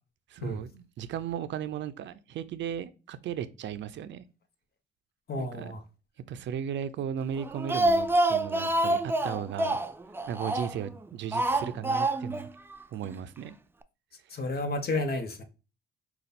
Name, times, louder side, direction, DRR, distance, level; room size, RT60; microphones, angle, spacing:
voice 1, 0.3-4.3 5.4-5.8 6.3-9.8 10.3-12.5 12.9-13.6, right 9 dB, 65° right, 0.5 m, -36 dB
voice 2, 5.3-5.8 14.3-15.4, left 2 dB, 50° left, 1.1 m, -31 dB
Speech, 7.4-10.9 11.3-12.5 12.7-12.8 13.1-13.2, right 1 dB, 10° right, 0.4 m, -27 dB
5.2 x 2.4 x 4.1 m
cardioid pair, 90°, 20 cm